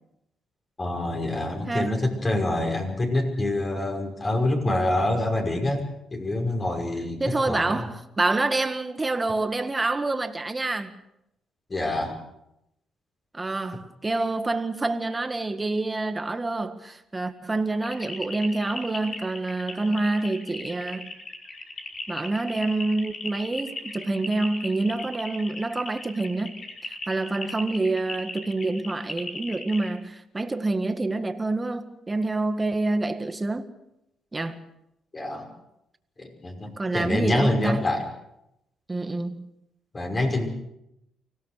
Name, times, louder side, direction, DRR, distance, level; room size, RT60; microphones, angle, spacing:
voice 1, 0.8-7.2 7.5-7.8 11.7-12.2 35.1-35.5 36.2-38.1 39.9-40.5, left 1 dB, 30° left, 5.6 m, -26 dB
voice 2, 7.2-10.9 13.3-21.1 22.1-33.7 34.3-34.7 36.8-37.9 38.9-39.5, right 2 dB, 20° right, 1.8 m, -27 dB
sound 1, 17.8-29.9, left 3 dB, 50° left, 5.1 m, -37 dB
25.0 x 17.0 x 6.6 m
cardioid pair, 90°, 0 cm